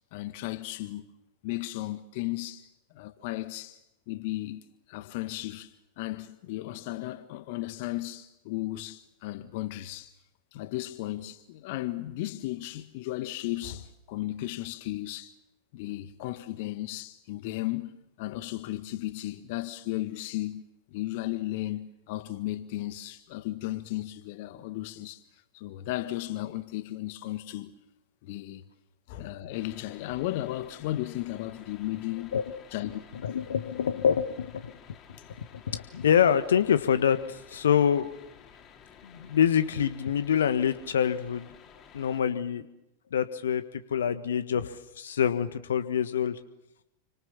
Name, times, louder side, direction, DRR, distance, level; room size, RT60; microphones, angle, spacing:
voice 1, 0.1-1.1 1.4-2.7 2.9-3.8 4.1-4.6 4.9-10.1 10.5-15.3 15.7-17.9 18.2-20.6 20.9-25.2 25.5-27.7 28.2-28.6 29.1-32.4 32.7-33.0, left 16 dB, 50° left, 1.7 m, -35 dB
sound 1, 29.5-42.2, left 8 dB, 30° left, 4.4 m, -53 dB
voice 2, 33.2-34.7 35.5-38.1 39.0-41.5 41.9-42.6 43.1-46.4, left 8 dB, 65° left, 1.5 m, -26 dB
29.5 x 25.5 x 7.2 m
figure-of-eight pair, 90°, 0 cm